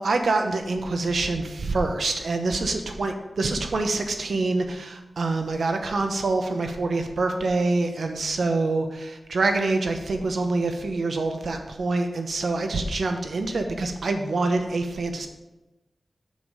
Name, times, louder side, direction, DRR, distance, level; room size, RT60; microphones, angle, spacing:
voice 1, 0.0-15.3, right 3 dB, 80° right, 5 dB, 1.1 m, -26 dB
7.7 x 7.4 x 5.1 m, 1.0 s
wide cardioid pair, 75°, 0 cm